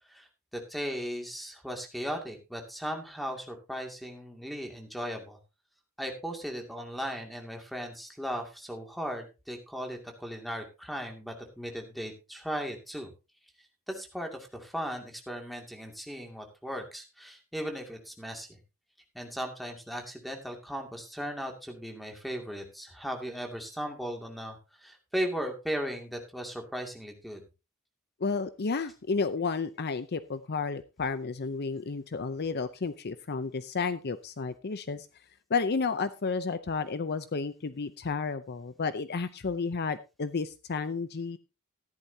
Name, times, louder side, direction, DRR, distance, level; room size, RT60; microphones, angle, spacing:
voice 1, 0.5-5.4 6.0-13.1 13.9-18.6 19.1-27.4, equal, ahead, 3 dB, 2.3 m, -37 dB
voice 2, 28.2-35.1 35.5-41.4, left 4 dB, 50° left, 13 dB, 0.6 m, -32 dB
14.5 x 11.5 x 2.8 m, 0.28 s
head